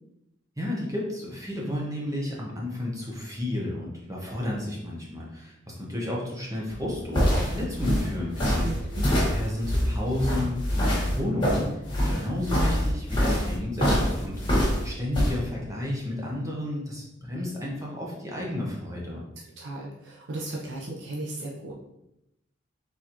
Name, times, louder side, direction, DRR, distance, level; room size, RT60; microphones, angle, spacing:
voice 1, 0.6-8.7 9.2-11.8 12.0-19.2, left 1 dB, 20° right, -4 dB, 0.8 m, -32 dB
sound 1, 6.7-15.3, equal, 25° left, 1.5 m, -25 dB
voice 2, 8.5-9.1 19.6-21.7, right 2 dB, 75° right, -2 dB, 0.7 m, -36 dB
4.2 x 3.9 x 2.9 m, 0.86 s
head